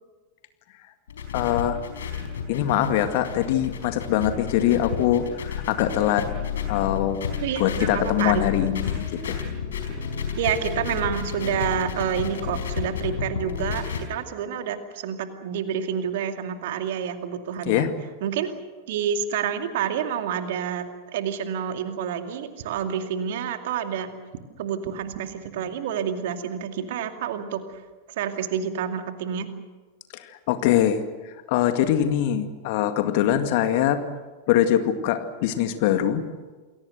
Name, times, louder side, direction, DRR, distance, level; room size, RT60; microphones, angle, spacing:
sound 1, 1.1-14.0, left 7 dB, 65° left, 4.5 m, -31 dB
voice 1, 1.3-1.8 2.5-6.3 6.7-7.2 7.6-9.4 17.7-17.9 30.1-34.0 34.5-36.2, left 11 dB, 50° left, 9 dB, 2.1 m, -23 dB
voice 2, 7.4-8.7 10.4-17.9 18.2-18.5 18.9-24.1 24.6-27.8 28.1-29.5, right 8 dB, 55° right, 7 dB, 2.3 m, -28 dB
29.0 x 21.5 x 6.7 m, 1.4 s
figure-of-eight pair, 90°, 0 cm